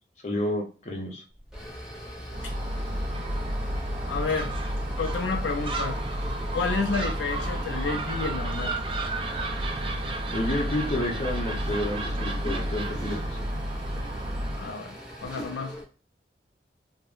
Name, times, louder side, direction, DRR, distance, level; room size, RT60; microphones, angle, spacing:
voice 1, 0.2-1.2 10.3-13.5, left 1 dB, 40° left, 0.7 m, -30 dB
sound 1, 1.3-15.8, equal, 5° right, 0.7 m, -41 dB
Gull seagull, 2.3-14.7, right 1 dB, 30° right, 0.3 m, -31 dB
voice 2, 4.1-4.5 5.0-6.0 6.5-8.7 14.6-15.8, left 4 dB, 80° left, 0.4 m, -30 dB
3.5 x 2.1 x 2.4 m
head